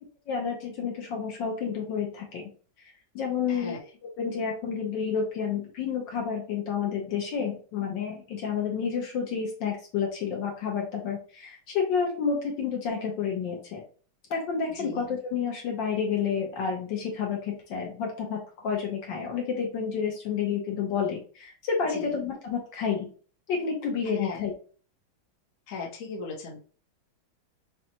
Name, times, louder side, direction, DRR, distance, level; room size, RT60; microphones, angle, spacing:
voice 1, 0.3-2.4 2.8-3.7 4.2-13.8 14.3-23.1 23.5-24.5, left 6 dB, 70° left, 1 dB, 1.4 m, -30 dB
voice 2, 3.5-3.8 14.8-15.1 21.9-22.1 24.1-24.4 25.7-26.6, left 4 dB, 50° left, -2 dB, 1.1 m, -37 dB
5.2 x 2.3 x 2.8 m, 0.41 s
omnidirectional pair, 2.3 m